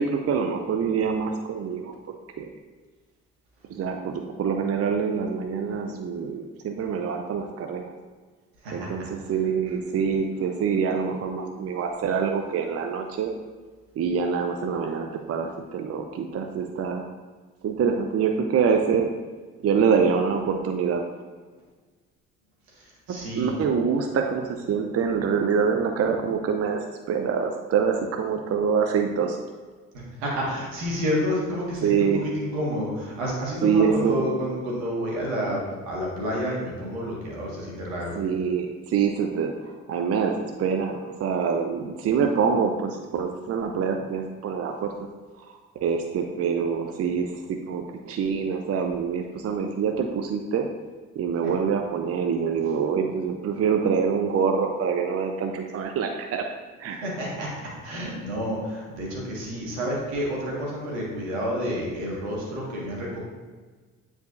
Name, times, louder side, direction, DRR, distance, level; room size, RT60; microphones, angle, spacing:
voice 1, 0.0-1.9 2.4-2.5 3.7-7.9 8.7-13.3 14.0-17.1 17.6-19.1 19.6-21.0 23.1-29.4 31.8-32.3 33.6-34.2 38.2-44.9 45.4-45.5 45.8-50.7 51.2-56.5 56.8-57.0, right 6 dB, 40° right, 4 dB, 0.6 m, -25 dB
voice 2, 8.6-9.1 22.7-23.5 30.2-38.2 51.4-51.5 57.0-57.5 57.8-63.2, equal, 75° right, -3 dB, 1.9 m, -29 dB
9.1 x 4.8 x 2.6 m, 1.4 s
hypercardioid pair, 50°, 39 cm